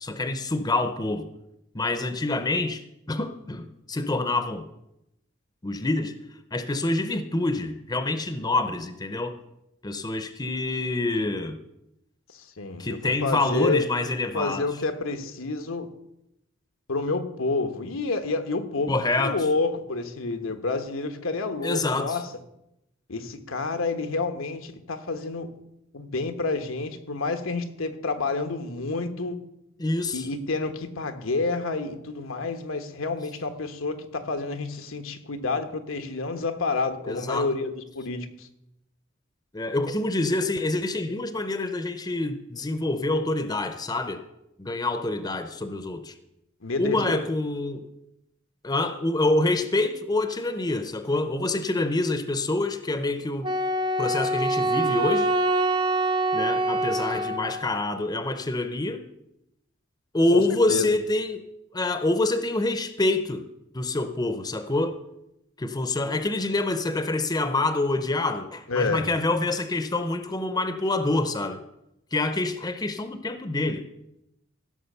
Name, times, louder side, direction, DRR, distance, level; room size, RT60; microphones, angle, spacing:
voice 1, 0.0-1.3 1.7-2.8 3.1-4.7 5.6-6.2 6.5-9.4 9.8-11.6 12.8-14.7 18.9-19.4 21.6-22.2 29.8-30.3 37.1-37.5 39.5-44.2 44.6-46.1 46.8-47.9 48.6-53.5 54.0-55.3 56.3-59.0 60.1-61.4 61.7-63.4 63.7-65.0 65.6-71.6 72.1-73.8, left 2 dB, 20° left, 0.7 m, -26 dB
voice 2, 12.3-13.9 14.3-15.9 16.9-22.3 23.1-25.5 25.9-29.4 30.1-38.5 46.6-47.2 60.3-60.4 60.7-60.9 68.7-69.1, left 3 dB, 85° left, 1.2 m, -29 dB
Wind instrument woodwind instrument, 53.4-57.7, right 2 dB, 25° right, 0.5 m, -25 dB
15.5 x 6.2 x 6.7 m
head